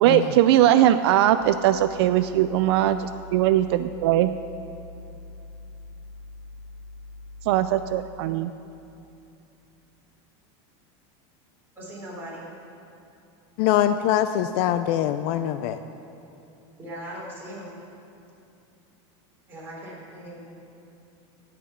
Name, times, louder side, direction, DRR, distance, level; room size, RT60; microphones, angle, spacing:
voice 1, 0.0-3.0 3.3-4.3 7.5-8.5, right 12 dB, 65° right, 11 dB, 0.4 m, -20 dB
sound 1, 1.4-8.2, left 2 dB, 20° left, 1.6 m, -43 dB
voice 2, 11.8-12.4 16.8-17.7 19.5-20.4, right 1 dB, 15° right, -6 dB, 3.8 m, -39 dB
voice 3, 13.6-15.8, left 11 dB, 45° left, 10 dB, 0.4 m, -23 dB
16.0 x 5.8 x 8.4 m, 2.7 s
supercardioid pair, 160°, 15 cm